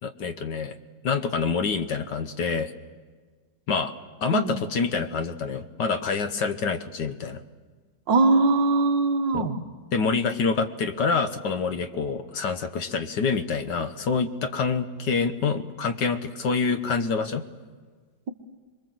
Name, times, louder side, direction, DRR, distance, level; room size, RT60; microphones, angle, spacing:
voice 1, 0.0-0.7 1.0-2.7 3.7-3.9 4.2-7.4 9.3-9.5 9.9-17.4, left 5 dB, 65° left, 10 dB, 1.6 m, -26 dB
voice 2, 8.1-9.6, right 3 dB, 65° right, 6 dB, 2.1 m, -21 dB
26.5 x 22.5 x 7.7 m, 1.5 s
omnidirectional pair, 2.2 m